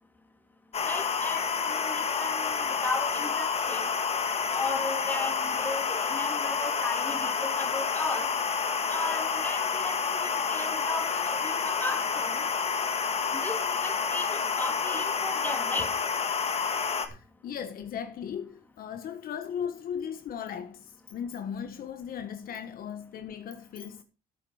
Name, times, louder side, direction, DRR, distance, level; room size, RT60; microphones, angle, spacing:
ZX Spectrum reading a tape, 0.7-17.1, left 6 dB, 35° left, 1.8 m, -29 dB
voice 1, 0.8-3.9 4.5-8.3 8.9-12.4 13.3-15.9, left 2 dB, 10° left, 2.7 m, -36 dB
voice 2, 17.1-24.0, left 8 dB, 60° left, 1.3 m, -37 dB
13.0 x 7.0 x 4.9 m
cardioid pair, 110°, 17 cm